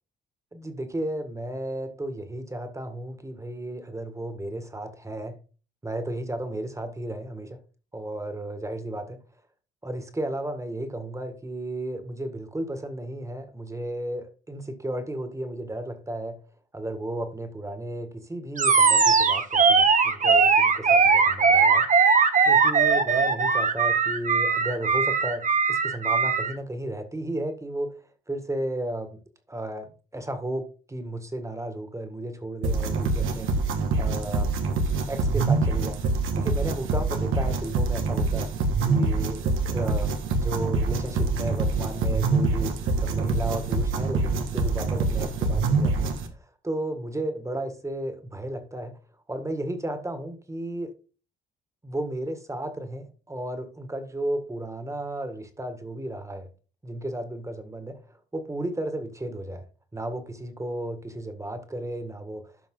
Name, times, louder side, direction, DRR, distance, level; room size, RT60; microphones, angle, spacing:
voice 1, 0.5-5.4 5.8-7.6 7.9-9.2 9.8-16.4 16.7-21.9 22.4-28.0 28.3-29.2 29.5-34.5 35.1-36.0 36.3-38.5 38.9-49.0 49.3-50.9 51.8-56.5 56.8-59.6 59.9-62.5, right 1 dB, 15° right, 1.8 m, -34 dB
Animal, 18.6-26.5, right 5 dB, 40° right, 1.3 m, -20 dB
sound 1, 32.6-46.3, right 3 dB, 85° right, 1.7 m, -25 dB
12.5 x 5.3 x 3.8 m
cardioid pair, 90°, 20 cm